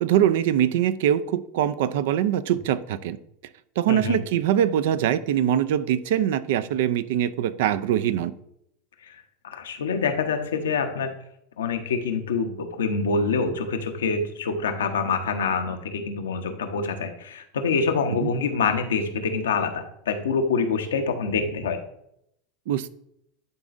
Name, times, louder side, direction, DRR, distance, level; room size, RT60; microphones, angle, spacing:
voice 1, 0.0-3.2 3.8-8.3 18.2-18.3 22.7-22.9, right 10 dB, 70° right, 15 dB, 0.4 m, -23 dB
voice 2, 3.9-4.2 9.1-11.1 11.6-21.8, left 4 dB, 90° left, 6 dB, 0.8 m, -26 dB
10.5 x 3.9 x 2.5 m, 0.75 s
hypercardioid pair, 100°, 0 cm